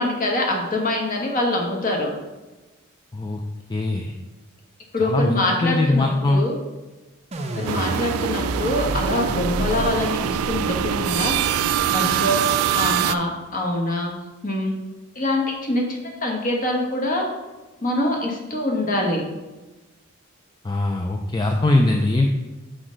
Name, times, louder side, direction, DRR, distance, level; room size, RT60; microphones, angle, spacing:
voice 1, 0.0-2.1 4.9-6.5 7.5-11.3 11.9-12.4 12.7-14.1 14.4-14.8 15.1-17.3 17.8-19.2, left 1 dB, 40° left, 0 dB, 1.2 m, -24 dB
voice 2, 3.7-4.1 5.0-6.4 20.6-22.3, left 2 dB, 20° left, 3 dB, 0.4 m, -21 dB
sound 1, 7.3-12.4, right 1 dB, 30° right, 0.5 m, -31 dB
sound 2, 7.7-13.2, right 10 dB, 80° right, 0.3 m, -24 dB
6.3 x 5.0 x 3.8 m, 1.2 s
head